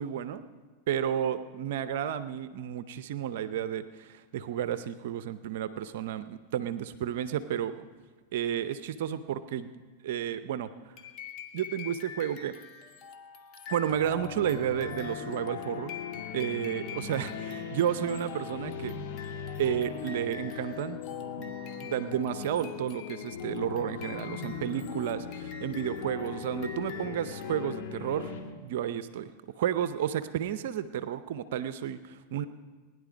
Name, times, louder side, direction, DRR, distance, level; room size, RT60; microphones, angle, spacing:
voice 1, 0.0-0.4 0.9-7.8 8.3-10.9 11.5-12.6 13.7-15.9 16.3-18.9 19.6-21.0 21.4-28.3 28.6-29.3 29.6-32.5, right 10 dB, 65° right, 12 dB, 0.6 m, -32 dB
sound 1, 11.0-28.0, left 6 dB, 45° left, 1.5 m, -46 dB
sound 2, 13.9-28.4, left 7 dB, 65° left, 2.1 m, -39 dB
19.5 x 11.0 x 5.1 m, 1.4 s
hypercardioid pair, 105°, 0 cm